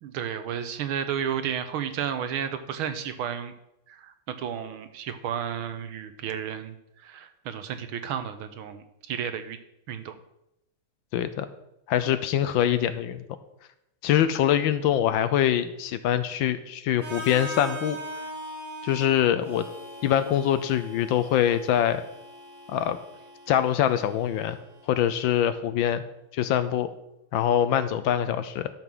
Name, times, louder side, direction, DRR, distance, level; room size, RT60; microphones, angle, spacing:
voice 1, 0.0-3.5 3.9-6.8 7.0-9.6 9.9-10.2, right 8 dB, 80° right, 9 dB, 1.7 m, -32 dB
voice 2, 11.1-11.5 11.9-13.2 14.0-18.0 18.8-19.7 20.0-22.0 22.7-23.0 23.5-24.6 24.9-26.0 26.3-26.9 27.3-28.7, left 10 dB, 75° left, 12 dB, 1.3 m, -24 dB
Harmonica, 17.0-24.9, equal, 35° right, 2.6 m, -41 dB
12.5 x 5.5 x 6.1 m, 0.84 s
omnidirectional pair, 2.3 m